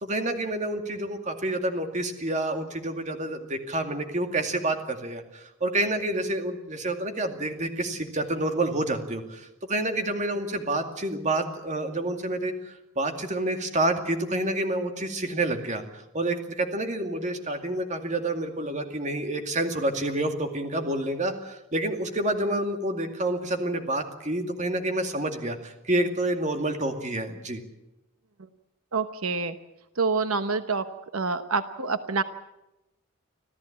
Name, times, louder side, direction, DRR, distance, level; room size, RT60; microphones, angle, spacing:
voice 1, 0.0-15.8 16.1-27.6, right 1 dB, 35° right, 5 dB, 2.3 m, -28 dB
voice 2, 28.9-29.6 29.9-30.8 31.1-32.2, right 4 dB, 80° right, 10 dB, 1.0 m, -27 dB
26.0 x 15.0 x 8.7 m, 0.93 s
head